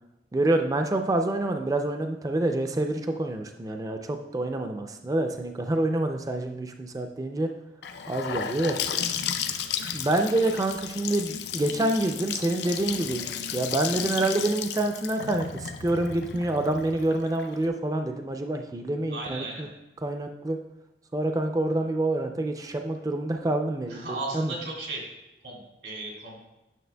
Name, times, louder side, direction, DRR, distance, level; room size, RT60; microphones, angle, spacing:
voice 1, 0.3-7.5 8.1-8.8 9.9-19.7 20.0-20.6 21.1-24.5, right 2 dB, 20° right, 5 dB, 0.3 m, -27 dB
Gurgling / Sink (filling or washing) / Bathtub (filling or washing), 7.8-17.7, left 8 dB, 75° left, 0.4 m, -33 dB
voice 2, 19.1-19.7 23.9-25.0 25.4-26.4, right 2 dB, 80° right, -1 dB, 2.2 m, -35 dB
9.2 x 6.3 x 2.2 m, 0.98 s
head